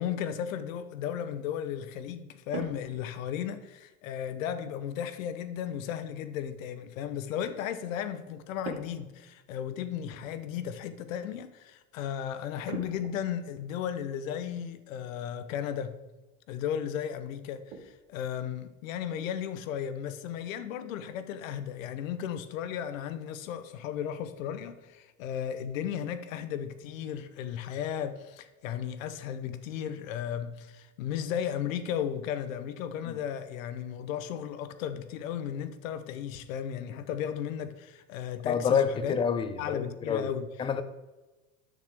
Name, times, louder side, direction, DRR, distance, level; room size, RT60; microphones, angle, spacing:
voice 1, 0.0-16.0 16.5-39.2 39.6-40.5, left 9 dB, 90° left, 0.8 m, -35 dB
sound 1, 2.5-3.7 4.6-4.9 8.6-9.2 9.4-9.5 10.1-10.3 12.7-13.6 15.0-15.1 15.6-15.7 16.1-16.3 16.7-16.8 17.2-18.0, right 5 dB, 65° right, 1.5 m, -42 dB
voice 2, 38.5-40.3 40.6-40.8, left 6 dB, 15° left, 0.4 m, -28 dB
10.0 x 6.7 x 3.5 m
supercardioid pair, 140°, 39 cm